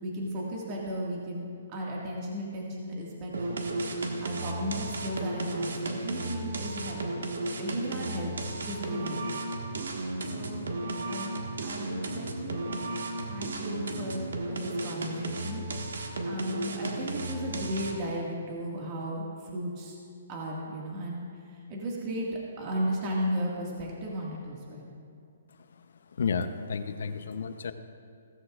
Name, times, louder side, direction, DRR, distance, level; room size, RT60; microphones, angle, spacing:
voice 1, 0.0-3.6 4.2-7.0 7.6-8.3 8.6-9.2 10.2-10.7 11.1-12.7 13.2-15.6 15.9-20.0 20.3-24.9, equal, 30° right, -3 dB, 1.9 m, -35 dB
sound 1, 3.3-18.1, right 2 dB, 85° right, 1.6 m, -34 dB
voice 2, 26.2-27.7, left 5 dB, 70° left, 9 dB, 0.7 m, -31 dB
16.5 x 14.0 x 2.5 m, 2.3 s
hypercardioid pair, 155°, 0 cm